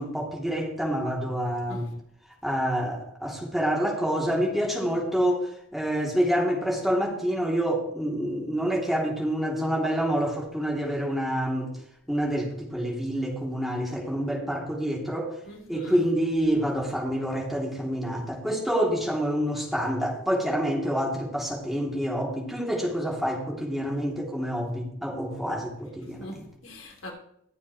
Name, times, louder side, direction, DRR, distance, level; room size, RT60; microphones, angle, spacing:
voice 1, 0.0-1.9 2.4-11.8 12.1-15.4 15.7-26.4, equal, ahead, 2.9 m, -27 dB
voice 2, 15.4-16.0 26.2-27.1, left 1 dB, 85° left, 3.0 m, -42 dB
21.5 x 7.2 x 3.2 m
head